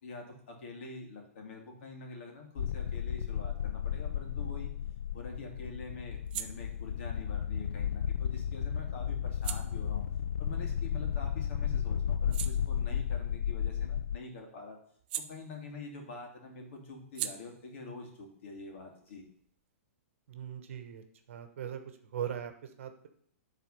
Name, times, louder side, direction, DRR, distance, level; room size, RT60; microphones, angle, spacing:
voice 1, 0.0-4.7 5.1-10.0 10.4-14.8 15.2-19.2, left 3 dB, 55° left, 1 dB, 2.5 m, -46 dB
sound 1, 2.6-14.2, left 8 dB, 75° left, 0.4 m, -33 dB
sound 2, 4.5-11.4 11.8-16.0 16.3-19.7, right 11 dB, 40° right, 0.6 m, -46 dB
voice 2, 20.3-21.0 21.3-21.8 22.1-22.5 22.8-23.1, right 9 dB, 60° right, 8 dB, 1.1 m, -39 dB
10.5 x 4.1 x 5.4 m, 0.65 s
hypercardioid pair, 165°, 8 cm